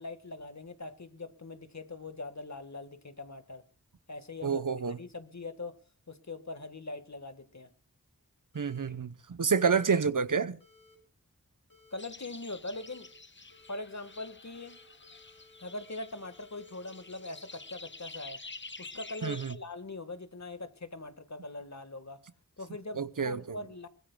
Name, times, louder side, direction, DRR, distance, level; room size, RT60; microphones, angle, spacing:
voice 1, 0.0-3.6 4.1-4.6 5.0-5.8 6.1-7.7 11.9-13.1 13.7-14.8 15.6-18.4 18.8-22.2 22.6-23.9, left 2 dB, 55° left, 1.6 m, -42 dB
voice 2, 4.4-5.0 8.5-10.6 19.2-19.5 23.0-23.6, right 5 dB, 70° right, 0.8 m, -29 dB
sound 1, 8.5-8.9 9.6-9.9 10.6-11.0 11.7-12.0 12.7-13.1 13.5-14.3 14.5-18.3, left 3 dB, 90° left, 6.6 m, -61 dB
sound 2, 12.0-19.6, left 3 dB, 35° left, 0.9 m, -49 dB
23.0 x 20.0 x 2.3 m
wide cardioid pair, 45°, 33 cm